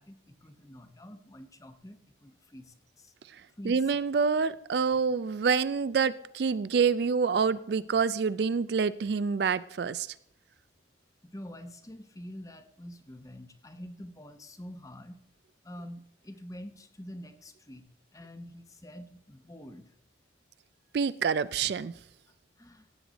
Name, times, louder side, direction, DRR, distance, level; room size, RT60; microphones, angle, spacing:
voice 1, 0.0-3.1 3.6-3.8 11.2-15.2 15.6-17.9 18.1-19.9 22.6-22.9, equal, 20° left, 8 dB, 0.9 m, -46 dB
voice 2, 3.6-10.1 20.9-21.9, right 5 dB, 60° right, 16 dB, 0.4 m, -27 dB
16.0 x 7.9 x 4.0 m, 0.70 s
head